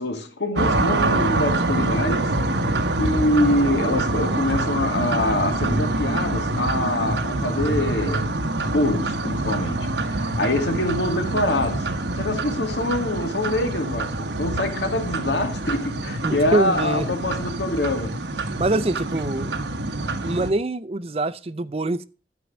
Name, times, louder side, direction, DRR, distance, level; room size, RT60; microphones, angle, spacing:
voice 1, 0.0-2.7 3.0-8.3 8.7-11.9 12.1-18.2, left 1 dB, 85° left, 1.9 m, -25 dB
sound 1, 0.6-20.5, right 2 dB, 85° right, 1.1 m, -25 dB
voice 2, 16.2-17.1 18.6-19.6 20.2-22.1, right 2 dB, 35° right, 0.5 m, -24 dB
12.5 x 4.6 x 6.2 m
head